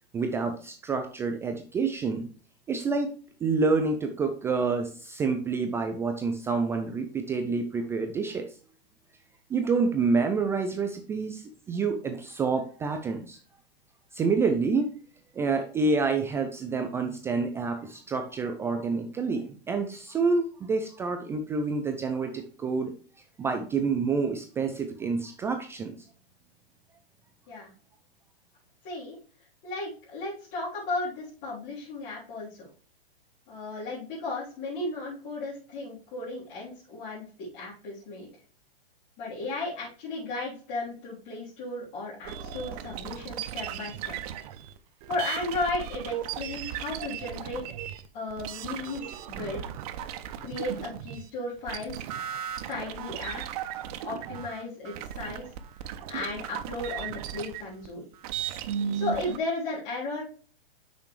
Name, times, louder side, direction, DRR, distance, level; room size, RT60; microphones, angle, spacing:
voice 1, 0.1-2.3 2.7-3.1 3.4-8.5 9.5-13.4 14.1-14.9 15.4-22.9 23.4-26.1, right 4 dB, 10° right, 6 dB, 0.3 m, -28 dB
voice 2, 28.8-29.2 29.6-32.7 33.5-38.3 39.2-44.1 45.1-47.6 48.1-49.7 50.4-52.1 52.7-53.6 54.0-55.5 56.1-58.0 58.9-60.2, left 2 dB, 35° left, -9 dB, 3.5 m, -35 dB
sound 1, 42.2-51.3 51.6-59.4, right 9 dB, 40° right, 0.7 m, -36 dB
8.2 x 6.1 x 3.2 m, 0.41 s
hypercardioid pair, 130°, 30 cm